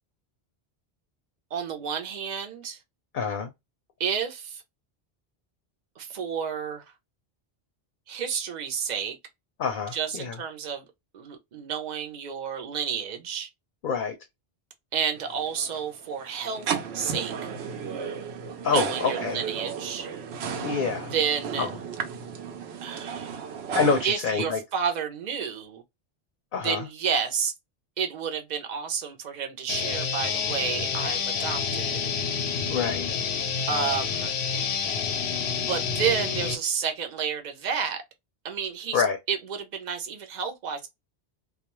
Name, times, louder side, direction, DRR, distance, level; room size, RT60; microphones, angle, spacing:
voice 1, 1.5-2.8 4.0-4.6 6.0-6.8 8.1-9.2 9.9-10.8 11.1-13.5 14.9-16.7 16.9-17.3 18.6-20.1 21.0-21.7 22.8-23.3 24.0-25.8 26.6-27.5 28.0-32.1 33.7-34.3 35.5-38.0 38.4-40.9, right 7 dB, 50° right, 0.7 m, -30 dB
voice 2, 3.1-3.5 9.6-10.3 13.8-14.2 18.6-19.4 20.5-21.1 21.6-21.7 23.7-24.6 26.5-26.8 32.7-33.0 38.9-39.2, left 5 dB, 60° left, 0.6 m, -26 dB
sound 1, 15.1-24.0, right 6 dB, 80° right, 0.9 m, -34 dB
sound 2, 29.7-36.5, left 6 dB, 90° left, 0.9 m, -28 dB
2.4 x 2.2 x 2.9 m
omnidirectional pair, 1.1 m